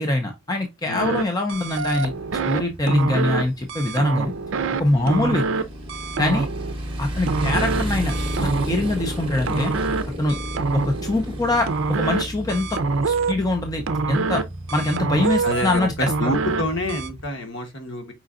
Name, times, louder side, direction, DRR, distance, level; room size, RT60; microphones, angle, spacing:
voice 1, 0.0-2.1 2.5-4.3 4.8-5.4 6.2-6.5 7.0-8.1 8.4-9.7 10.2-10.4 10.7-12.8 13.1-13.8 14.1-14.4 14.7-16.3, left 2 dB, 15° left, 0.5 m, -23 dB
sound 1, 1.0-1.2 1.5-2.6 2.9-3.4 3.7-4.8 5.1-5.6 5.9-6.7 7.3-7.8 8.1-8.9 9.5-10.0 10.3-11.1 11.7-12.2 12.5-13.3 13.9-14.4 14.7-15.8 16.1-16.6 16.9-17.1, right 4 dB, 60° right, 0.5 m, -25 dB
Motorcycle, 1.5-17.3, equal, 25° right, 0.9 m, -33 dB
voice 2, 15.4-18.1, left 1 dB, 55° left, 1.2 m, -28 dB
5.0 x 3.8 x 2.4 m
head